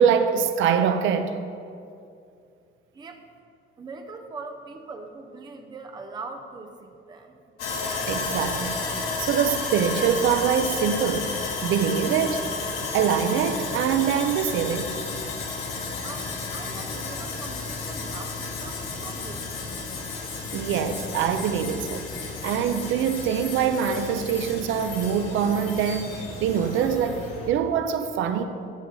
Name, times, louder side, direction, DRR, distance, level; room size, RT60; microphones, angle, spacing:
voice 1, 0.0-1.3 8.1-8.8 9.2-11.3 11.6-12.5 12.9-15.0 20.5-22.1 22.4-28.4, right 7 dB, 70° right, 0.6 m, -24 dB
voice 2, 3.8-7.3 16.0-19.8, right 3 dB, 20° right, 0.6 m, -41 dB
Sawing, 7.6-27.5, left 4 dB, 85° left, 1.7 m, -32 dB
13.5 x 7.9 x 3.9 m
cardioid pair, 175°, 21 cm